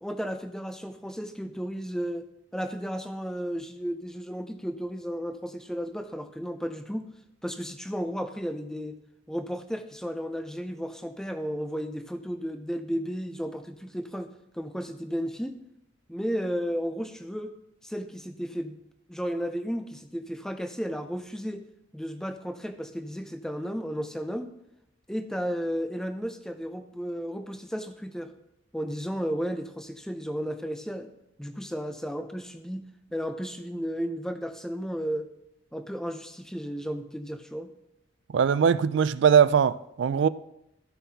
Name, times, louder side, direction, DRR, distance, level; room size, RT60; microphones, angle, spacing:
voice 1, 0.0-2.3 2.5-7.1 7.4-9.0 9.3-15.6 16.1-17.6 17.8-18.8 19.1-21.7 21.9-24.5 25.1-28.3 28.7-31.1 31.4-35.3 35.7-37.7, equal, 5° left, 0.4 m, -33 dB
voice 2, 38.3-40.3, right 7 dB, 60° right, 0.3 m, -21 dB
14.5 x 5.6 x 2.8 m
head